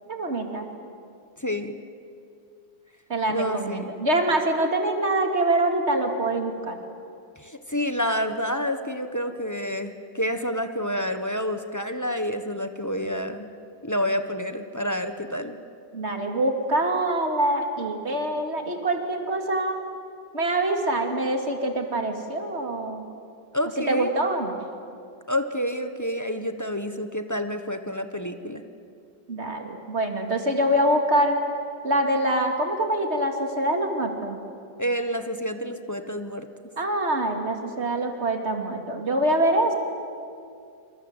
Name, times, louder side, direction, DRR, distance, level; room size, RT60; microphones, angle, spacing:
voice 1, 0.1-0.7 3.1-6.8 15.9-19.8 20.3-23.0 23.9-24.6 29.3-31.4 31.8-34.4 36.8-39.7, right 1 dB, 35° right, 4 dB, 2.9 m, -25 dB
voice 2, 1.4-1.8 3.3-3.9 7.4-13.5 13.8-15.6 23.5-24.1 25.3-28.6 34.8-36.5, equal, 10° left, 7 dB, 1.0 m, -28 dB
27.5 x 26.5 x 8.1 m, 2.4 s
omnidirectional pair, 1.9 m